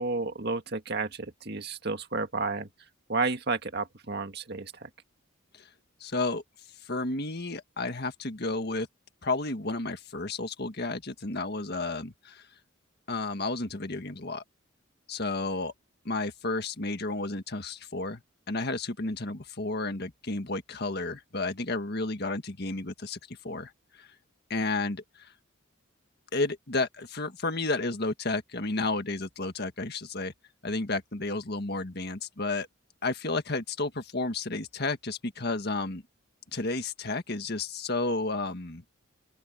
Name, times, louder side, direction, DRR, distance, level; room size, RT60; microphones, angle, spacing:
voice 1, 0.0-2.7 3.1-4.9, right 3 dB, 50° right, 1.9 m, -31 dB
voice 2, 6.0-6.4 6.9-8.9 9.2-12.4 13.1-14.4 15.1-15.7 16.1-18.2 18.5-23.7 24.0-24.1 24.5-25.3 26.3-30.3 30.6-32.7 33.0-36.0 36.5-38.8, left 2 dB, 50° left, 1.7 m, -32 dB
open air
head